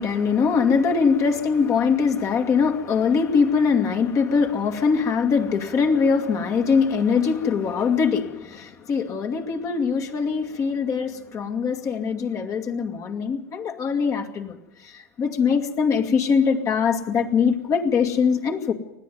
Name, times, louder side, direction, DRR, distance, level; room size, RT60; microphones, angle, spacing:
voice 1, 0.0-14.6 14.8-18.7, left 5 dB, 35° left, 5 dB, 2.2 m, -22 dB
20.5 x 14.5 x 9.2 m, 0.91 s
hypercardioid pair, 100°, 9 cm